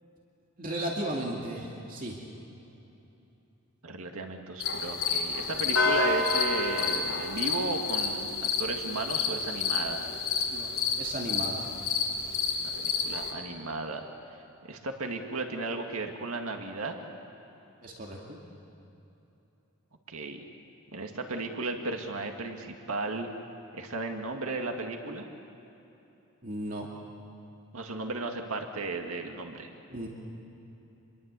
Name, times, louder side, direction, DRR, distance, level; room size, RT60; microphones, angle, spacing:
voice 1, 0.6-2.2 10.5-10.7 11.0-11.7 17.8-18.4 26.4-26.9 29.9-30.1, right 1 dB, 40° right, -1 dB, 2.5 m, -35 dB
voice 2, 3.8-10.1 12.6-14.0 14.6-17.0 20.1-20.4 20.9-23.3 23.7-25.2 27.7-29.7, right 3 dB, 85° right, 3 dB, 2.0 m, -35 dB
sound 1, 4.6-13.3, left 4 dB, 80° left, 3.9 m, -29 dB
27.5 x 22.0 x 8.3 m, 3.0 s
head